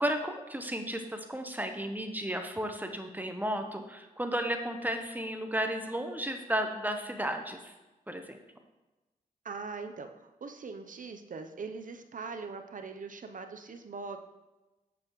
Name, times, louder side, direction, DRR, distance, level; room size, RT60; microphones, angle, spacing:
voice 1, 0.0-7.7 8.1-8.4, right 1 dB, 10° right, 6 dB, 0.9 m, -33 dB
voice 2, 9.4-14.2, right 4 dB, 55° right, 7 dB, 0.7 m, -41 dB
8.4 x 7.8 x 3.1 m, 1.1 s
cardioid pair, 55°, 16 cm